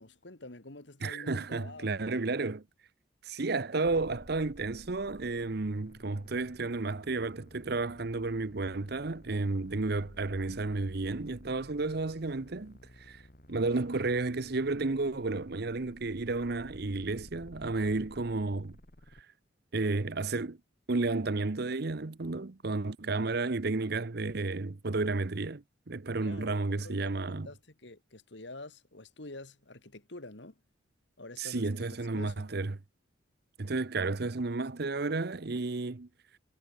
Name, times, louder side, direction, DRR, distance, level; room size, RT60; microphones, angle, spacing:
voice 1, 0.0-2.2 26.2-30.6 31.2-32.4, left 2 dB, 65° left, 2.3 m, -48 dB
voice 2, 1.0-2.6 3.2-13.2 13.5-18.8 19.7-20.6 20.9-27.5 31.4-32.8 33.6-36.1, right 3 dB, 55° right, 0.8 m, -32 dB
sound 1, 3.8-19.2, equal, 45° left, 4.3 m, -54 dB
head